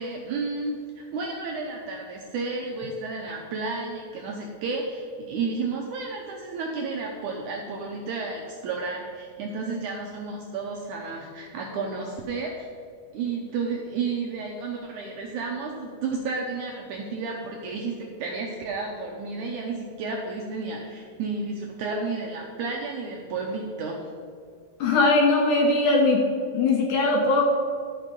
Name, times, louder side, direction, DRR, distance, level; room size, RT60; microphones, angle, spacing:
voice 1, 0.0-12.7 13.1-24.0, right 4 dB, 75° right, 0 dB, 1.8 m, -32 dB
voice 2, 24.8-26.2 26.5-27.5, left 3 dB, 75° left, 1 dB, 1.9 m, -20 dB
11.5 x 5.6 x 5.2 m, 2.2 s
omnidirectional pair, 4.4 m